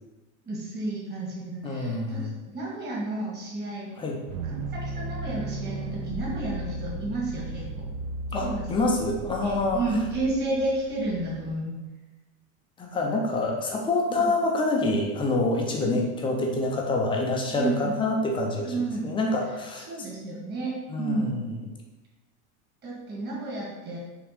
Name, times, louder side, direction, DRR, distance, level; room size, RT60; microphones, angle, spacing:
voice 1, 0.4-3.9 4.4-7.9 8.4-8.8 9.4-11.8 14.2-14.3 15.7-16.0 17.5-18.0 18.6-19.1 19.9-21.4 22.8-24.0, right 2 dB, 25° right, -4 dB, 2.0 m, -31 dB
voice 2, 1.6-2.3 4.0-4.2 8.3-9.8 12.8-18.7 19.0-19.9 20.9-21.6, left 2 dB, 10° left, 0 dB, 0.5 m, -26 dB
sound 1, 4.3-11.5, right 2 dB, 75° right, 0.8 m, -35 dB
6.1 x 3.5 x 5.0 m, 1.1 s
supercardioid pair, 165°, 41 cm